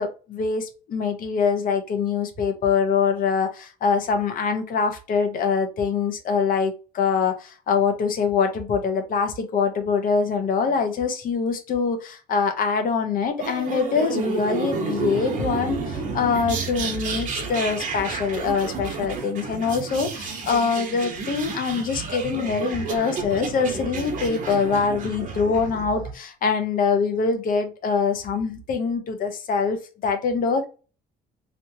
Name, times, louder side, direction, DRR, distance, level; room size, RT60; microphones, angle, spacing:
voice 1, 0.0-29.8 30.0-30.6, left 5 dB, 55° left, 1.0 m, -24 dB
sound 1, 13.4-26.1, right 5 dB, 50° right, 1.2 m, -31 dB
3.2 x 2.8 x 2.8 m
cardioid pair, 110°, 17 cm